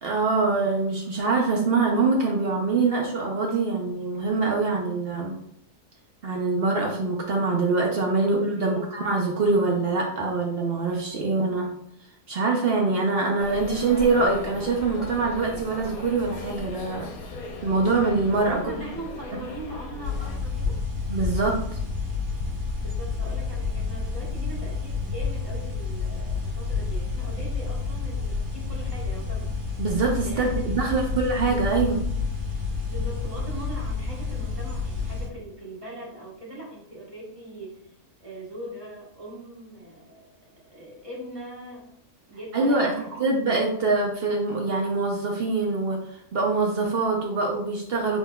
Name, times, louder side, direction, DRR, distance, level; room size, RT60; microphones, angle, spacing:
voice 1, 0.0-5.3 6.2-11.7 12.3-17.1 17.6-18.6 21.1-21.6 29.8-32.0 42.5-42.9 43.2-48.2, right 3 dB, 55° right, 1 dB, 0.7 m, -24 dB
voice 2, 8.5-9.0 18.5-20.7 22.8-29.5 30.2-31.1 32.9-37.9 38.2-40.2 40.7-41.9 42.3-43.2, right 1 dB, 25° right, -5 dB, 1.3 m, -40 dB
sound 1, 13.4-20.4, left 3 dB, 75° left, 1.1 m, -38 dB
sound 2, 20.0-35.3, left 4 dB, 85° right, 2.2 m, -29 dB
4.2 x 3.9 x 2.2 m, 0.69 s
omnidirectional pair, 1.6 m